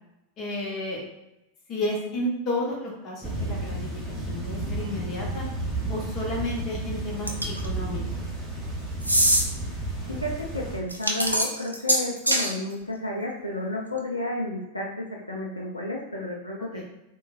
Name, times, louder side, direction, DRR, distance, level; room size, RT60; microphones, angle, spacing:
voice 1, 0.4-1.0 1.7-3.8 4.1-5.5 5.9-8.2 16.7-16.8, left 1 dB, 35° left, -3 dB, 0.8 m, -32 dB
sound 1, 3.2-10.8, right 2 dB, 15° right, 0.7 m, -32 dB
sound 2, 7.3-7.7 9.0-9.4 10.9-12.5, equal, 85° right, 0.4 m, -22 dB
voice 2, 10.1-16.8, left 1 dB, 85° left, -1 dB, 0.4 m, -32 dB
3.1 x 2.2 x 2.4 m, 0.90 s
figure-of-eight pair, 90°, 0 cm